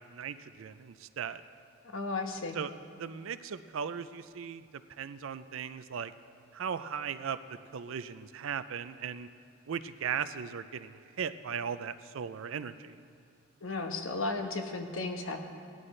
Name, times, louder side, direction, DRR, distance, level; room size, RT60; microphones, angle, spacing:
voice 1, 0.0-1.4 2.5-2.7 3.0-6.1 6.5-9.3 9.7-13.0, right 7 dB, 75° right, 13 dB, 0.4 m, -38 dB
voice 2, 1.9-2.6 13.6-15.4, left 3 dB, 75° left, 4 dB, 1.1 m, -34 dB
17.5 x 11.0 x 3.2 m, 2.4 s
head